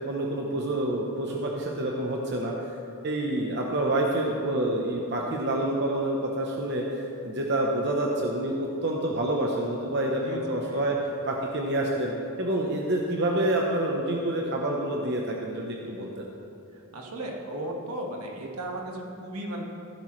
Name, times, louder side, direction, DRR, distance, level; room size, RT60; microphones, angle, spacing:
voice 1, 0.0-2.8 3.0-11.0 11.2-12.1 12.4-16.2, right 1 dB, 50° right, -1 dB, 0.9 m, -28 dB
voice 2, 10.2-10.8 16.9-19.6, right 1 dB, 80° right, 0 dB, 1.7 m, -35 dB
15.0 x 11.5 x 3.2 m, 2.6 s
head